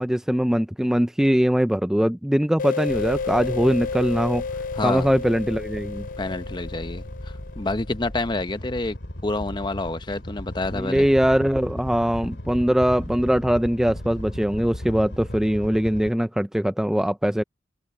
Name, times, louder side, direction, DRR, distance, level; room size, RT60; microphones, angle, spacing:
voice 1, 0.0-4.4 4.8-6.1 10.7-17.4, equal, 5° right, 0.3 m, -22 dB
sound 1, 2.6-7.9, left 5 dB, 50° left, 0.5 m, -32 dB
sound 2, 2.9-16.1, left 1 dB, 80° left, 2.3 m, -37 dB
voice 2, 4.7-5.1 6.2-7.1 7.6-9.0 9.2-11.0, left 2 dB, 25° left, 0.8 m, -28 dB
head